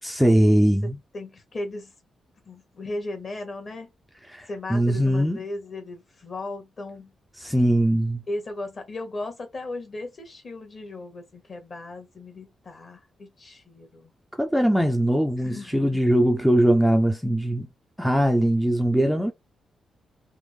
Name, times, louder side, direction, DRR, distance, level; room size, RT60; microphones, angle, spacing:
voice 1, 0.0-1.0 4.3-5.5 7.4-8.2 14.3-17.7 18.0-19.3, right 1 dB, ahead, 0.4 m, -21 dB
voice 2, 0.8-1.9 2.5-3.9 4.5-7.1 8.3-14.1 15.4-16.0, left 2 dB, 35° left, 1.1 m, -36 dB
3.4 x 2.0 x 3.1 m
cardioid pair, 125°, 0 cm